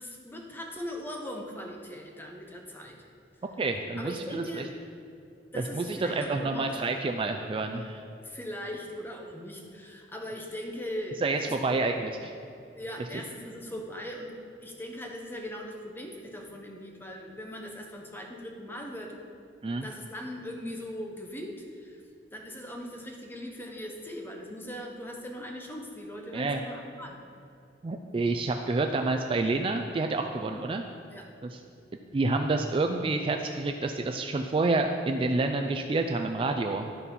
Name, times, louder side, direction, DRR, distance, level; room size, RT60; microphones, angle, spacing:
voice 1, 0.0-3.0 4.0-4.7 5.5-6.8 8.2-11.8 12.7-14.3 14.6-19.2 19.8-22.0 22.3-27.2 31.1-31.3, equal, 10° left, 1 dB, 0.9 m, -40 dB
voice 2, 3.6-4.6 5.5-8.0 11.2-12.3 13.1-13.2 19.6-19.9 26.3-26.6 27.8-30.9 31.4-31.6 32.1-36.9, right 3 dB, 30° right, 4 dB, 0.3 m, -28 dB
12.0 x 4.2 x 5.4 m, 2.5 s
head